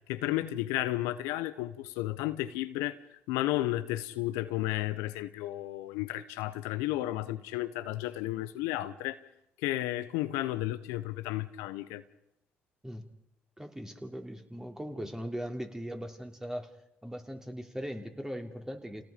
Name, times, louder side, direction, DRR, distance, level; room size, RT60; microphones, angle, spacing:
voice 1, 0.1-3.0 3.3-9.2 9.6-12.0, left 16 dB, 85° left, 0.8 m, -33 dB
voice 2, 13.6-16.7 17.0-19.0, equal, 10° right, 3.2 m, -39 dB
29.0 x 18.5 x 5.1 m
hypercardioid pair, 55°, 5 cm